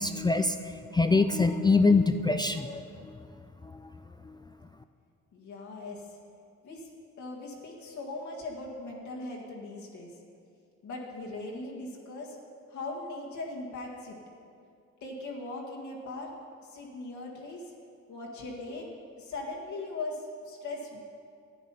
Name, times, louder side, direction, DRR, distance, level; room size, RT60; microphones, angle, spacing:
voice 1, 0.0-3.1 4.2-4.4, left 3 dB, 15° left, 8 dB, 0.4 m, -25 dB
voice 2, 5.3-6.2 6.6-6.9 7.2-10.1 10.8-12.4 12.7-14.2 15.0-16.3 16.6-17.7 18.1-18.9 19.2-21.0, left 2 dB, 70° left, -3 dB, 1.8 m, -39 dB
11.0 x 8.8 x 5.5 m, 2.4 s
cardioid pair, 90°, 30 cm